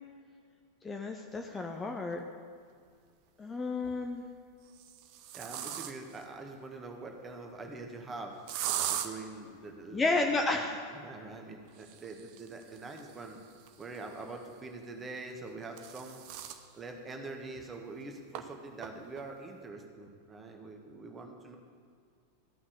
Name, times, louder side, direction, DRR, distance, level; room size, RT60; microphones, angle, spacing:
voice 1, 0.8-2.2 3.4-4.2 9.9-10.8, left 3 dB, 15° left, 3 dB, 0.7 m, -31 dB
sound 1, 2.1-2.2 3.6-4.1 4.7-6.2 8.5-9.1 11.7-14.3 15.3-16.7 17.1-17.2 17.6-17.7 18.3-18.4 18.8-19.2, right 10 dB, 45° right, 0.7 m, -39 dB
voice 2, 5.3-8.4 8.8-13.4 13.8-16.3 16.7-21.6, right 3 dB, 20° right, 3 dB, 1.5 m, -44 dB
14.0 x 5.8 x 8.1 m, 2.2 s
figure-of-eight pair, 90°, 0 cm